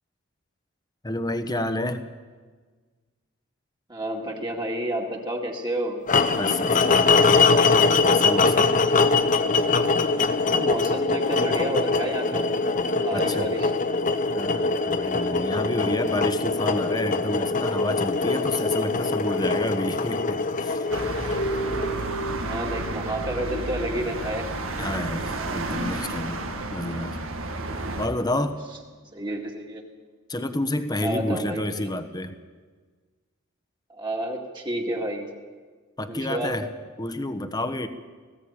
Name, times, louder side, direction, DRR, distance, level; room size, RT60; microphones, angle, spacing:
voice 1, 1.0-2.0 6.3-7.5 7.8-8.7 13.1-13.6 14.3-20.9 24.8-27.2 27.9-28.6 30.3-32.4 36.0-37.9, left 1 dB, 20° left, 8 dB, 1.2 m, -29 dB
voice 2, 3.9-6.0 10.4-12.4 13.0-13.7 22.4-24.5 29.1-29.8 31.0-31.9 33.9-35.3 36.1-36.6, right 1 dB, 20° right, 0 dB, 2.2 m, -30 dB
sound 1, 6.1-22.2, left 4 dB, 40° left, 0.9 m, -22 dB
sound 2, 19.1-29.2, right 1 dB, 60° left, 2.5 m, -38 dB
sound 3, 20.9-28.1, right 2 dB, 80° right, 2.0 m, -31 dB
19.5 x 15.5 x 9.0 m, 1.4 s
head